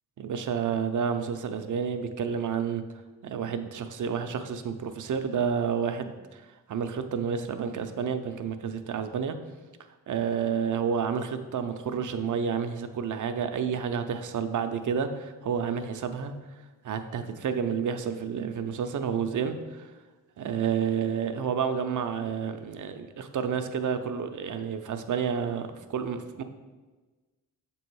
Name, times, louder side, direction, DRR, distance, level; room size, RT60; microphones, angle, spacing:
voice 1, 0.2-2.8 3.2-6.4 6.7-9.4 10.1-16.3 16.8-19.9 20.4-26.4, right 7 dB, 50° right, 8 dB, 0.6 m, -30 dB
7.0 x 3.1 x 4.7 m, 1.3 s
cardioid pair, 55°, 38 cm